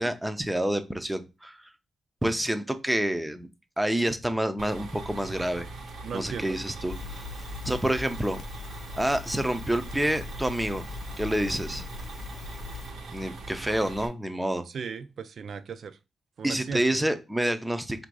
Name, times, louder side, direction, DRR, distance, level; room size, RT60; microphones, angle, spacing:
voice 1, 0.0-1.6 2.2-3.5 3.8-5.7 6.1-7.3 7.6-8.4 9.0-10.9 11.2-11.8 13.1-14.7 16.4-18.1, right 1 dB, 5° right, 0.5 m, -28 dB
sound 1, 4.6-14.1, right 2 dB, 80° right, 1.0 m, -41 dB
voice 2, 6.0-6.6 14.7-16.0 16.4-16.8, right 6 dB, 60° right, 0.4 m, -37 dB
Crackle, 6.9-12.9, left 4 dB, 60° left, 0.7 m, -41 dB
3.6 x 2.6 x 4.7 m
cardioid pair, 115°, 0 cm